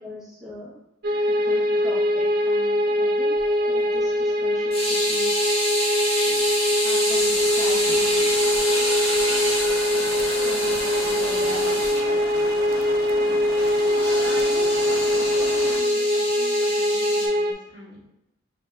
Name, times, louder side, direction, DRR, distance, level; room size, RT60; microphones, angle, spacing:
voice 1, 0.0-0.8 1.3-3.4 3.6-5.3 6.2-6.4 6.7-8.3 10.4-12.2, left 1 dB, ahead, -7 dB, 0.7 m, -39 dB
sound 1, 1.0-17.5, left 1 dB, 45° right, 0.4 m, -22 dB
sound 2, 4.7-12.0 13.6-17.3, equal, 30° left, 0.9 m, -28 dB
sound 3, 7.1-15.8, left 4 dB, 80° left, 0.4 m, -35 dB
voice 2, 9.9-10.3 11.1-11.2 13.2-13.6 13.9-18.1, left 1 dB, 65° left, -7 dB, 1.4 m, -42 dB
5.3 x 2.7 x 2.2 m, 0.87 s
head